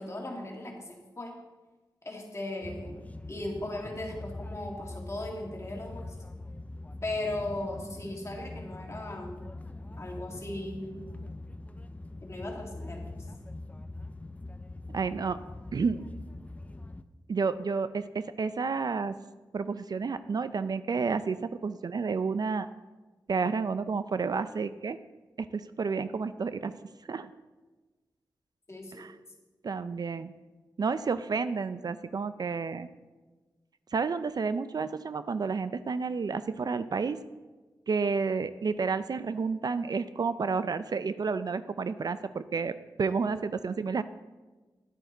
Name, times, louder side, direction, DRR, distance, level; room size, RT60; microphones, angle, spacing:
voice 1, 0.0-1.3 2.0-3.0 3.3-6.1 7.0-9.3 10.0-11.0 12.2-13.0 28.7-29.0 43.1-43.4, left 1 dB, 35° left, 0 dB, 2.2 m, -37 dB
sound 1, 2.6-17.0, left 2 dB, 20° left, 0.5 m, -43 dB
voice 2, 14.9-15.4 15.7-16.0 17.3-19.1 19.5-22.7 23.3-25.0 25.4-26.7 27.1-27.3 28.9-29.2 29.6-30.3 30.8-32.9 33.9-37.2 37.9-44.0, right 5 dB, 55° right, 13 dB, 0.4 m, -30 dB
11.0 x 8.9 x 3.9 m, 1.2 s
cardioid pair, 65°, 8 cm